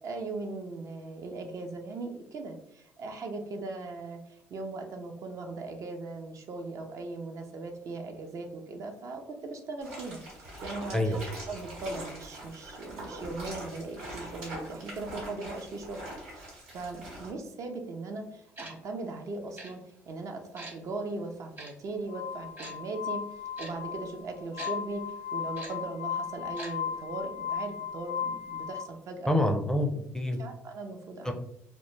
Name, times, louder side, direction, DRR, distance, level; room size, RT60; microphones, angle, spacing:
voice 1, 0.0-11.2 11.5-16.5 16.7-23.2 23.6-29.3 30.4-31.3, right 3 dB, 50° right, 4 dB, 0.4 m, -39 dB
sound 1, 9.8-17.3, right 1 dB, 85° right, 1.0 m, -43 dB
voice 2, 10.9-11.4 29.3-30.4 31.2-31.3, left 1 dB, 10° left, 4 dB, 0.4 m, -27 dB
Tick-tock, 18.6-18.7 19.6-19.7 20.6-20.7 21.6-21.7 22.6-22.7 23.6-23.7 24.6-24.7 25.6-25.7 26.6-26.7 27.0-27.1, right 1 dB, 30° right, 0.8 m, -41 dB
Glass, 22.1-28.8, left 7 dB, 70° left, 0.5 m, -36 dB
2.1 x 2.0 x 3.1 m, 0.76 s
hypercardioid pair, 65°, 7 cm